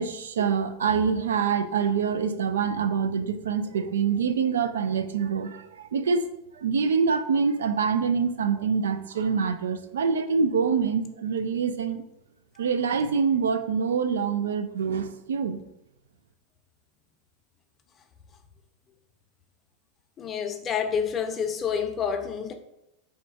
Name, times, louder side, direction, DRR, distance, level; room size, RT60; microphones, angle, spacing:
voice 1, 0.0-6.3 6.5-12.0 12.6-15.6, right 6 dB, 85° right, 10 dB, 0.3 m, -25 dB
voice 2, 20.2-22.5, left 7 dB, 30° left, 6 dB, 0.5 m, -28 dB
3.5 x 2.3 x 4.0 m, 0.83 s
hypercardioid pair, 105°, 0 cm